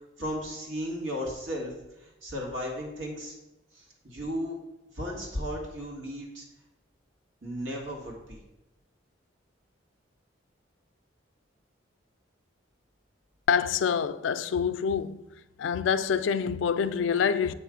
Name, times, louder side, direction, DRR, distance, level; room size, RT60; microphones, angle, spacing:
voice 1, 0.2-3.3 3.7-4.6 4.9-6.4 7.4-8.4, equal, 85° right, 1.8 m, -35 dB
voice 2, 13.5-15.2 15.6-17.5, left 7 dB, 75° left, 0.3 m, -26 dB
8.1 x 3.1 x 6.1 m
head